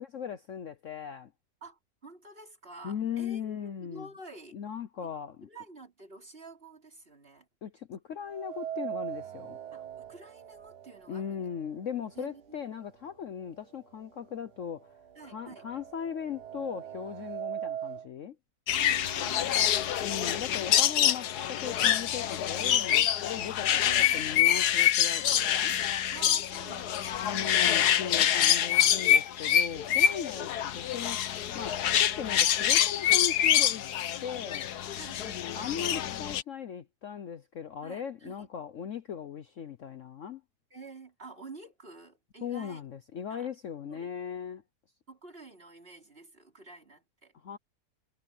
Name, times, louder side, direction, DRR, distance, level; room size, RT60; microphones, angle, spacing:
voice 1, 0.0-1.3 2.8-4.1 4.5-5.5 7.6-9.6 11.1-14.9 15.2-18.4 20.0-25.7 27.2-31.2 31.5-33.8 34.2-34.7 35.5-40.4 42.4-44.6 47.4-47.6, left 8 dB, 55° left, 1.0 m, -38 dB
voice 2, 1.6-4.6 5.0-5.1 5.5-7.5 9.7-11.5 12.2-12.6 15.2-15.7 18.7-20.1 23.8-24.3 26.1-28.8 29.9-30.6 35.0-35.5 37.8-38.5 40.7-42.8 43.3-43.5 43.8-44.1 45.1-47.3, right 3 dB, 35° right, 3.8 m, -49 dB
sound 1, 8.3-12.3 12.7-12.8 13.7-13.8 14.2-18.1, right 10 dB, 70° right, 1.5 m, -41 dB
sound 2, 18.7-36.4, left 10 dB, 70° left, 1.4 m, -26 dB
omnidirectional pair, 1.8 m